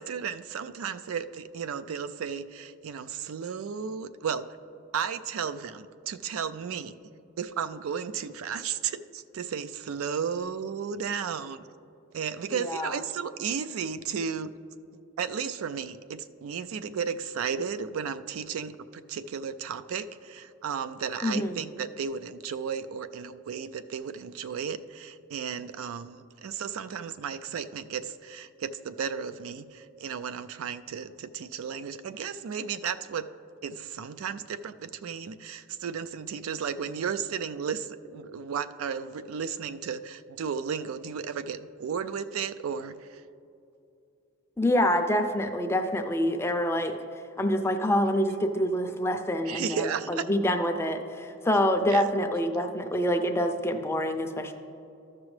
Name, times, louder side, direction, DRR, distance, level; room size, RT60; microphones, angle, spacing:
voice 1, 0.0-4.5 4.9-6.9 7.4-11.6 12.1-14.5 15.2-33.2 33.6-43.2 49.5-50.3 51.9-52.1, right 6 dB, 80° right, 12 dB, 0.4 m, -34 dB
voice 2, 12.6-12.9 21.2-21.6 44.6-47.0 47.4-54.5, left 1 dB, 10° left, 6 dB, 0.4 m, -26 dB
14.0 x 6.1 x 3.2 m, 2.7 s
head